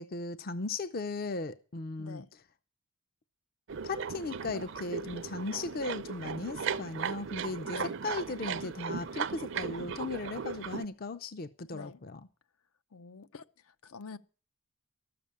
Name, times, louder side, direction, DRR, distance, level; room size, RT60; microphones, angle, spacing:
voice 1, 0.0-2.2 3.8-7.8 8.0-12.2, left 3 dB, 40° left, 0.5 m, -37 dB
voice 2, 2.0-2.3 7.7-7.9 11.7-12.0 12.9-14.2, left 4 dB, 75° left, 0.7 m, -46 dB
sound 1, 3.7-10.8, right 6 dB, 55° right, 0.5 m, -37 dB
13.0 x 6.9 x 8.5 m
head